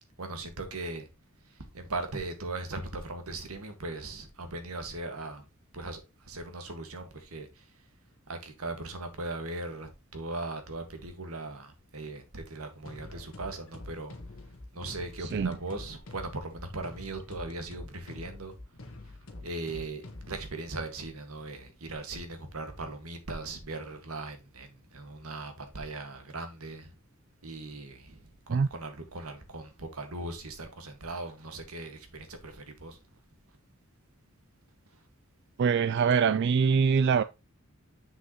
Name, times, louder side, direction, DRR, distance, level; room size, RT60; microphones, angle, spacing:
voice 1, 0.2-1.1 1.5-5.4 5.7-7.7 8.3-14.1 14.7-18.6 19.0-19.1 19.4-26.9 27.4-33.0, right 2 dB, 90° right, 1.7 m, -39 dB
sound 1, 12.8-20.5, left 2 dB, 70° left, 1.3 m, -46 dB
voice 2, 15.2-15.6 28.5-28.7 35.6-37.2, right 6 dB, 50° right, 0.3 m, -24 dB
7.3 x 6.4 x 3.0 m
head